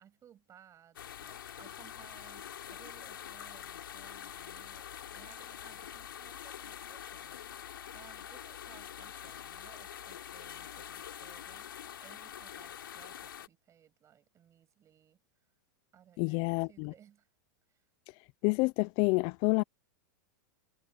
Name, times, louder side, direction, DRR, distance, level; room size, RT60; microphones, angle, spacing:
voice 1, 0.0-7.7 7.9-15.2 15.9-17.3 17.7-17.8, right 9 dB, 25° right, 7.6 m, -60 dB
sound 1, 1.0-13.5, left 10 dB, 90° left, 3.7 m, -45 dB
voice 2, 16.2-16.9 18.4-19.6, left 28 dB, 45° left, 0.5 m, -28 dB
hypercardioid pair, 125°, 11 cm